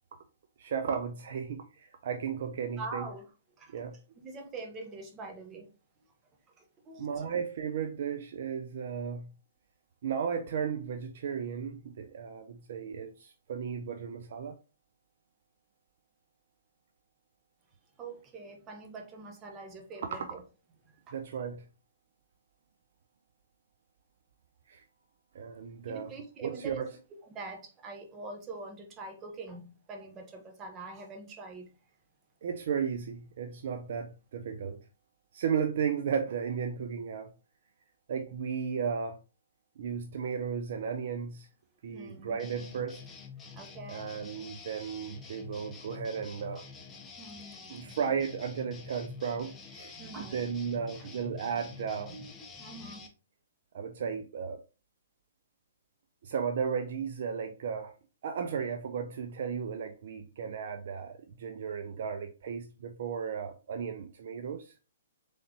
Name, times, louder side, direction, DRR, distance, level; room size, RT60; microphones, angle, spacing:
voice 1, 0.6-3.1 3.7-4.0 7.0-9.3 10.0-14.6 21.1-21.6 24.7-24.8 25.3-26.1 26.4-26.9 32.4-34.8 35.3-37.3 38.1-39.2 39.8-41.5 41.8-43.0 43.9-46.7 47.7-52.1 53.7-54.6 56.2-57.9 58.2-64.8, right 6 dB, 60° right, 0.4 m, -35 dB
voice 2, 2.8-3.3 3.6-3.8 4.2-5.7 6.6-7.3 18.0-20.4 20.9-21.1 25.9-26.8 27.3-31.7 41.9-42.4 43.5-44.1 47.2-47.7 49.9-50.4 52.1-53.0, right 3 dB, 20° right, 1.0 m, -44 dB
sound 1, 42.4-53.1, left 5 dB, 15° left, 0.7 m, -48 dB
3.8 x 3.2 x 2.8 m
hypercardioid pair, 135°, 0 cm